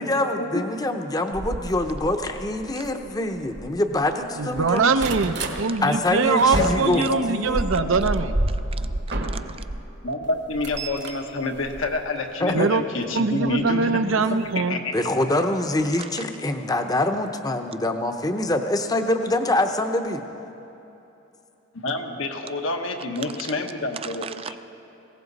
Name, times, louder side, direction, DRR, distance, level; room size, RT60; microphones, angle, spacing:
voice 1, 0.0-4.9 5.8-7.7 12.4-12.7 14.9-20.2, left 1 dB, 20° left, 6 dB, 0.7 m, -25 dB
sound 1, 1.3-4.1 4.4-5.6 6.0-9.8 10.2-12.4 13.5-13.7 14.1-14.2 14.5-14.6, right 1 dB, 60° right, 1.2 m, -30 dB
voice 2, 4.4-8.3 12.5-12.8 13.1-14.8, right 4 dB, 75° right, 10 dB, 0.6 m, -22 dB
voice 3, 6.6-7.3 7.8-7.9 8.2-8.3 10.0-14.1 14.5-14.9 21.7-24.2, left 2 dB, 80° left, 3 dB, 1.3 m, -28 dB
voice 4, 8.5-9.7 15.9-16.2 23.2-23.4 23.9-24.6, right 7 dB, 30° right, 10 dB, 0.3 m, -39 dB
19.5 x 17.0 x 4.1 m, 3.0 s
head